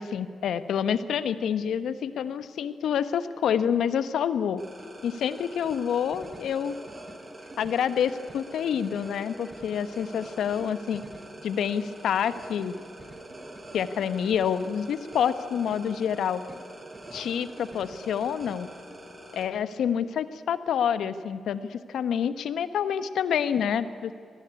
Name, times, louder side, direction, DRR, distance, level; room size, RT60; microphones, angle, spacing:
voice 1, 0.0-4.6 5.0-6.7 7.6-11.0 11.4-12.7 13.7-16.4 17.1-18.7 19.3-24.1, left 8 dB, 75° left, 12 dB, 1.2 m, -27 dB
sound 1, 4.6-19.4, right 1 dB, 35° right, 5.5 m, -44 dB
26.0 x 18.0 x 9.6 m, 2.3 s
hypercardioid pair, 45°, 0 cm